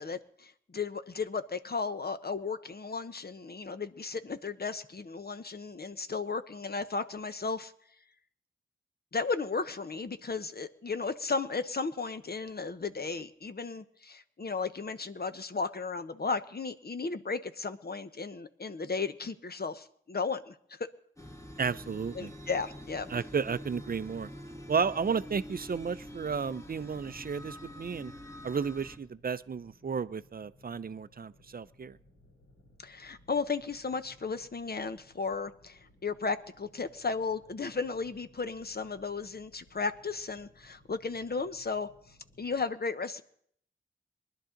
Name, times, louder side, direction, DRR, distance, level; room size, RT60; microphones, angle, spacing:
voice 1, 0.0-7.7 9.1-20.9 22.1-23.1 32.8-41.9 42.4-43.2, left 4 dB, 50° left, 10 dB, 0.9 m, -35 dB
sound 1, 21.2-29.0, equal, 15° left, 2.0 m, -46 dB
voice 2, 21.6-22.3 23.1-24.3 24.7-28.1 28.4-32.0, right 6 dB, 45° right, 16 dB, 0.5 m, -33 dB
sound 2, 25.6-42.6, left 1 dB, 85° left, 7.5 m, -62 dB
20.5 x 11.5 x 3.9 m, 0.66 s
cardioid pair, 45°, 21 cm